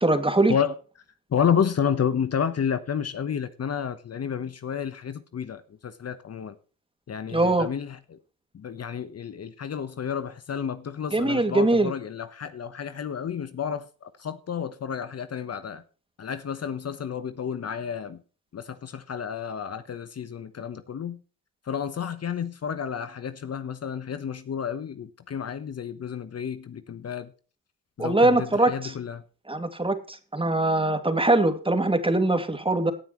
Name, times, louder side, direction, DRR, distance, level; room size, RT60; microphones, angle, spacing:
voice 1, 0.0-0.6 7.3-7.7 11.1-11.9 28.0-28.9 29.5-32.9, right 2 dB, 15° right, 2.4 m, -22 dB
voice 2, 1.3-6.6 7.1-8.2 8.5-15.8 16.2-18.2 18.5-21.2 21.7-27.3 28.0-29.2, left 7 dB, 40° left, 1.2 m, -30 dB
17.5 x 9.2 x 3.1 m
supercardioid pair, 75°, 37 cm